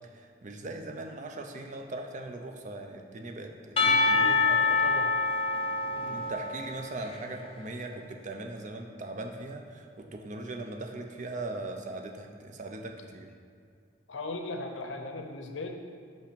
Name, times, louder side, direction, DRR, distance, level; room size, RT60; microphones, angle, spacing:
voice 1, 0.1-4.8 6.1-13.3, right 2 dB, 40° right, 4 dB, 0.6 m, -40 dB
Percussion / Church bell, 3.8-7.4, left 4 dB, 30° left, 0.5 m, -26 dB
voice 2, 3.9-5.1 5.9-6.2 14.1-15.7, left 2 dB, 75° left, 4 dB, 0.7 m, -39 dB
5.9 x 5.4 x 5.2 m, 2.2 s
head